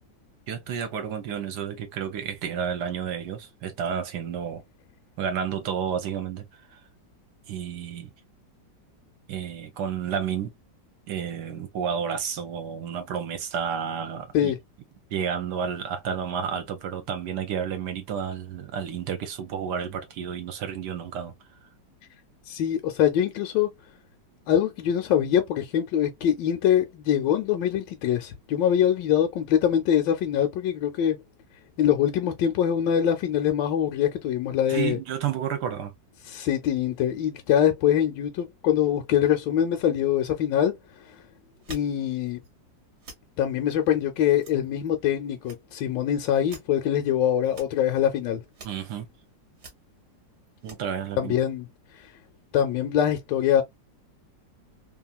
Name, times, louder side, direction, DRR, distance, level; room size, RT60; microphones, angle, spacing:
voice 1, 0.5-4.6 5.2-6.8 7.5-8.1 9.3-10.5 11.1-14.5 15.1-21.3 34.7-35.9 48.6-49.1 50.6-51.4, right 8 dB, 70° right, 1.1 m, -31 dB
voice 2, 22.5-23.7 24.5-31.2 31.8-35.0 36.3-40.7 41.7-42.4 43.4-48.4 51.2-51.7 52.5-53.6, left 10 dB, 75° left, 1.2 m, -23 dB
sound 1, 41.6-41.9 42.3-42.5 43.0-43.2 43.6-43.7 44.4-45.1 45.3-46.0 46.3-46.8 47.4-47.7 48.2-48.3 48.5-49.0 49.5-49.7 50.5-50.8, right 2 dB, 50° right, 0.9 m, -45 dB
2.9 x 2.6 x 2.2 m
omnidirectional pair, 2.0 m